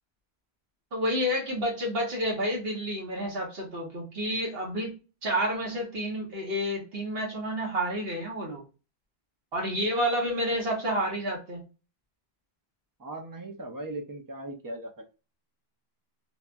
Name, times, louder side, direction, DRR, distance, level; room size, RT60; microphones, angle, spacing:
voice 1, 0.9-4.9 5.2-8.6 9.5-11.6, equal, 70° right, -2 dB, 1.4 m, -29 dB
voice 2, 13.0-14.9, right 1 dB, 25° right, 3 dB, 0.5 m, -38 dB
3.3 x 2.2 x 2.5 m, 0.33 s
omnidirectional pair, 1.1 m